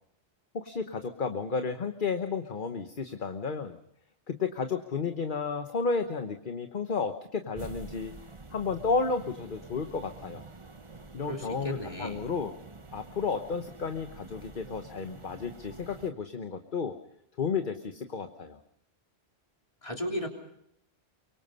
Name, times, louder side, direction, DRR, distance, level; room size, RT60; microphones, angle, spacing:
voice 1, 0.5-3.8 4.3-8.1 8.5-10.4 11.1-12.6 12.9-17.0 17.4-18.6, left 5 dB, 50° left, 7 dB, 1.3 m, -32 dB
sound 1, 7.5-16.1, right 3 dB, 30° right, 1.2 m, -48 dB
voice 2, 11.2-12.2 19.8-20.3, equal, 30° left, 2 dB, 3.5 m, -35 dB
24.5 x 23.5 x 5.5 m, 0.74 s
omnidirectional pair, 1.1 m